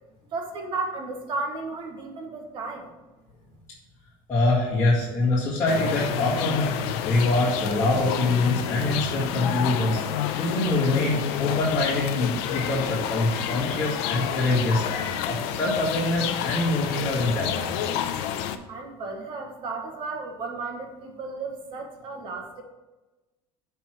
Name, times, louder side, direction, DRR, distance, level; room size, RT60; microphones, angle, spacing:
voice 1, 0.3-2.9 18.7-22.6, right 3 dB, 40° right, 2 dB, 1.4 m, -34 dB
voice 2, 4.3-6.7 7.0-10.0 10.3-17.9, left 2 dB, 20° left, -10 dB, 2.0 m, -24 dB
sound 1, 5.7-18.6, left 10 dB, 80° left, 0.6 m, -29 dB
7.1 x 4.6 x 6.1 m, 1.1 s
cardioid pair, 165°, 13 cm